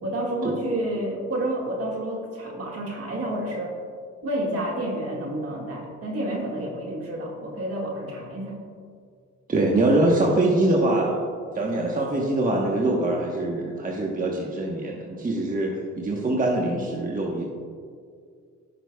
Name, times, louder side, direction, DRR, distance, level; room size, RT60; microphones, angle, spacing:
voice 1, 0.0-3.7 4.2-8.6, right 1 dB, 50° right, -1 dB, 2.0 m, -29 dB
voice 2, 9.5-11.2 11.5-17.4, right 2 dB, 25° right, -2 dB, 1.1 m, -23 dB
15.5 x 5.8 x 2.3 m, 2.1 s
cardioid pair, 90°, 30 cm